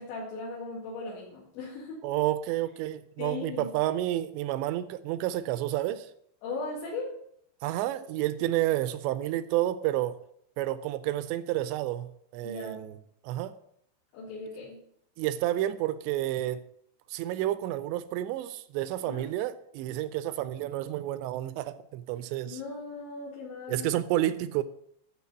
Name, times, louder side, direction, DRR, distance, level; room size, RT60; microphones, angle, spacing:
voice 1, 0.0-2.0 3.2-3.7 6.4-7.1 12.4-12.8 14.1-14.8 19.0-19.3 22.5-23.9, left 3 dB, 75° left, 4.3 m, -38 dB
voice 2, 2.0-6.1 7.6-10.2 10.6-12.9 13.2-13.5 15.2-16.6 17.1-22.6 23.7-24.6, right 14 dB, 85° right, 2.6 m, -30 dB
12.5 x 4.4 x 7.2 m
omnidirectional pair, 5.4 m